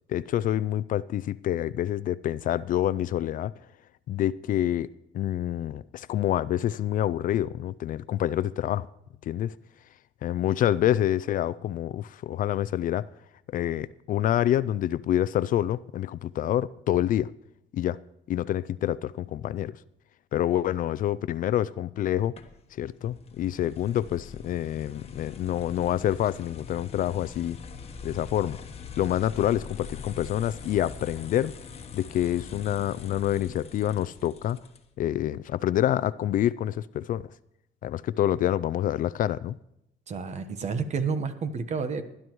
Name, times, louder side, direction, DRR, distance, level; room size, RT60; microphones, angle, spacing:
voice 1, 0.1-3.5 4.1-4.9 5.1-8.9 9.2-9.6 10.2-13.1 13.5-17.3 17.7-18.0 18.3-19.7 20.3-22.3 22.8-27.6 28.0-28.6 29.0-31.5 31.9-34.6 35.0-37.3 37.8-39.6, left 12 dB, 55° left, 0.4 m, -27 dB
sound 1, 22.4-35.1, left 5 dB, 35° left, 1.3 m, -43 dB
voice 2, 40.1-42.0, right 5 dB, 40° right, 1.2 m, -30 dB
19.5 x 11.0 x 3.1 m
cardioid pair, 110°, 17 cm